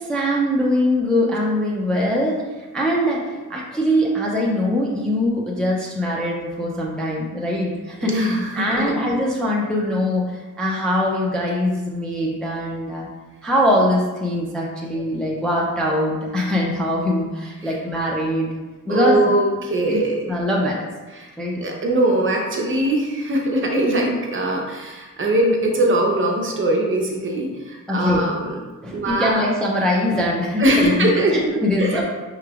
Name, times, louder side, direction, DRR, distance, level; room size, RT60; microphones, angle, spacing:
voice 1, 0.0-13.1 13.4-18.5 18.9-19.3 19.9-20.0 20.3-20.8 21.4-21.6 27.9-28.3 28.8-32.0, left 1 dB, ahead, -3 dB, 0.4 m, -22 dB
voice 2, 8.0-8.9 17.6-17.7 18.9-20.2 21.1-21.3 21.6-28.6 28.9-29.4 30.6-32.0, right 1 dB, 35° right, 0 dB, 0.7 m, -21 dB
5.8 x 3.1 x 2.3 m, 1.2 s
wide cardioid pair, 170°, 34 cm